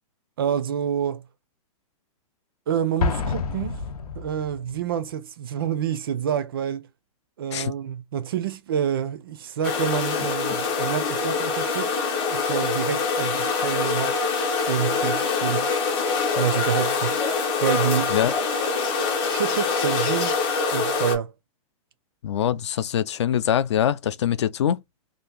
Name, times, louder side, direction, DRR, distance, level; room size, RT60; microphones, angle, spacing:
voice 1, 0.4-1.2 2.7-3.8 4.2-6.9 7.4-12.0 12.3-14.2 14.7-15.7 16.4-17.2 17.6-18.2 18.8-18.9 19.3-20.3 20.7-21.3, right 9 dB, 40° right, 0.4 m, -27 dB
Explosion, 3.0-4.8, left 4 dB, 90° left, 0.7 m, -28 dB
sound 1, 9.6-21.1, left 4 dB, 20° left, 0.8 m, -24 dB
voice 2, 22.2-24.8, left 10 dB, 50° left, 0.4 m, -23 dB
2.8 x 2.5 x 3.5 m
hypercardioid pair, 180°, 19 cm